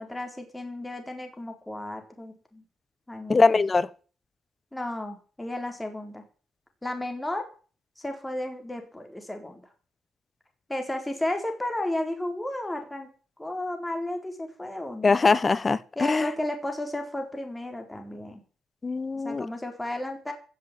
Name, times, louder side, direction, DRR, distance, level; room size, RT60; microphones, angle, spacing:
voice 1, 0.0-2.6 3.1-3.4 4.7-6.2 6.8-7.5 8.0-9.6 10.7-13.1 13.4-15.2 16.0-18.4 19.1-20.3, left 1 dB, 10° left, 4.2 m, -33 dB
voice 2, 3.3-3.9 15.0-16.3 18.8-19.5, left 4 dB, 30° left, 1.1 m, -22 dB
16.0 x 7.6 x 7.6 m
cardioid pair, 90°, 0 cm